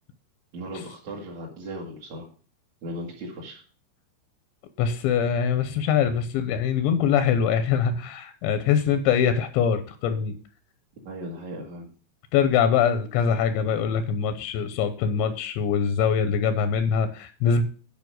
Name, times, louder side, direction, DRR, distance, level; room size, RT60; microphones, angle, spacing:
voice 1, 0.5-2.3 2.8-3.6 11.0-11.9, equal, 50° right, -5 dB, 2.4 m, -37 dB
voice 2, 4.8-10.3 12.3-17.6, left 7 dB, 85° left, 10 dB, 2.9 m, -23 dB
9.3 x 5.3 x 6.3 m, 0.39 s
omnidirectional pair, 5.4 m